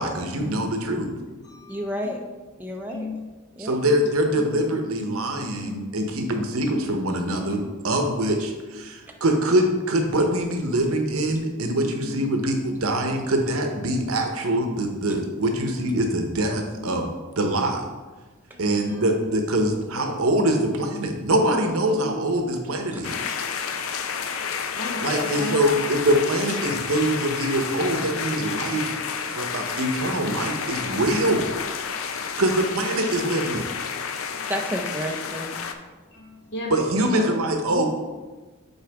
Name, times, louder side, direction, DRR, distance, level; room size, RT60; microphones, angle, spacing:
voice 1, 0.0-1.1 3.6-17.1 17.4-17.8 18.6-23.3 25.0-28.9 29.3-31.5 32.4-33.6 36.7-37.9, right 1 dB, 90° right, 4 dB, 1.0 m, -24 dB
voice 2, 1.2-2.2 2.9-3.3 3.8-4.1 4.3-4.9 5.6-6.0 6.6-6.8 9.0-9.2 12.0-12.2 13.9-14.0 14.9-15.0 15.8-15.9 16.7-17.0 17.6-17.8 18.5-19.0 19.9-20.5 21.9-22.2 22.9-23.2 24.7-26.0 26.4-26.9 32.1-32.4 34.3-34.5 36.1-37.4 37.7-37.9, left 2 dB, 60° left, -1 dB, 1.5 m, -37 dB
voice 3, 1.7-2.2 2.6-3.1 3.6-3.8 22.9-23.0 25.1-25.3 34.5-35.6, equal, 10° right, 0 dB, 0.5 m, -31 dB
sound 1, 23.0-35.7, left 6 dB, 75° left, 0.5 m, -30 dB
8.1 x 4.5 x 3.5 m, 1.3 s
head